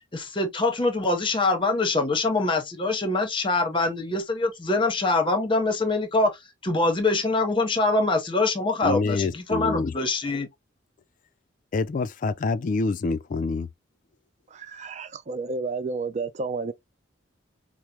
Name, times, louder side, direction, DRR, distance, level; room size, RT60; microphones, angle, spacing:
voice 1, 0.1-10.5, left 2 dB, 25° left, 0.8 m, -24 dB
voice 2, 8.8-9.9 11.7-13.7, left 3 dB, 40° left, 0.3 m, -26 dB
voice 3, 14.5-16.7, right 4 dB, 35° right, 0.4 m, -31 dB
4.7 x 2.0 x 2.8 m
head